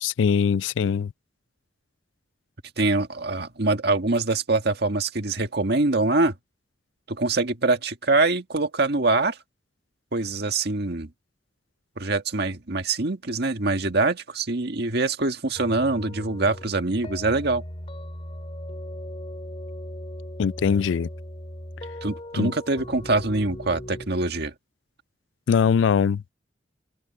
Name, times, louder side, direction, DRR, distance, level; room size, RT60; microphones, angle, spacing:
voice 1, 0.0-1.1 20.4-21.1 22.4-22.5 25.5-26.3, left 6 dB, 80° left, 0.3 m, -22 dB
voice 2, 2.8-6.3 7.1-9.4 10.1-11.1 12.0-17.6 22.0-24.5, right 3 dB, 60° right, 1.8 m, -24 dB
sound 1, 15.6-24.1, left 1 dB, 30° left, 4.1 m, -38 dB
open air
head